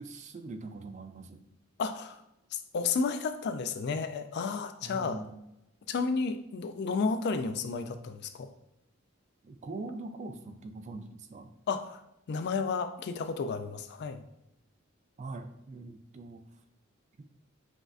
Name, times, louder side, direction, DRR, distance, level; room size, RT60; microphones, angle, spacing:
voice 1, 0.0-1.4 4.8-5.3 9.4-11.5 15.2-16.5 17.2-17.3, right 3 dB, 35° right, 8 dB, 0.3 m, -42 dB
voice 2, 1.8-2.2 2.5-5.2 5.9-8.5 11.7-12.0 12.3-14.2, left 4 dB, 55° left, 9 dB, 0.3 m, -32 dB
6.0 x 2.4 x 2.5 m, 0.87 s
head